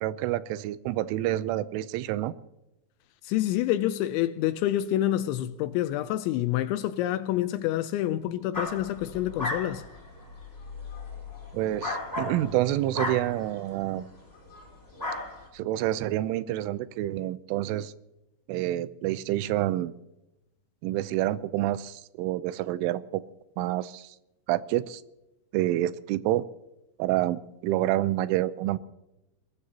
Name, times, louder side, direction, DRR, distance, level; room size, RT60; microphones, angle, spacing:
voice 1, 0.0-2.3 11.5-14.1 15.5-17.9 18.5-19.9 20.8-23.2 23.6-24.2 24.5-25.0 25.5-26.4 27.0-28.8, right 14 dB, 90° right, 3.2 m, -28 dB
voice 2, 3.2-9.8, left 13 dB, 80° left, 2.9 m, -27 dB
sound 1, 8.5-14.0 14.5-14.7 15.0-15.5, left 2 dB, 15° left, 4.1 m, -35 dB
23.0 x 20.5 x 2.9 m
omnidirectional pair, 5.5 m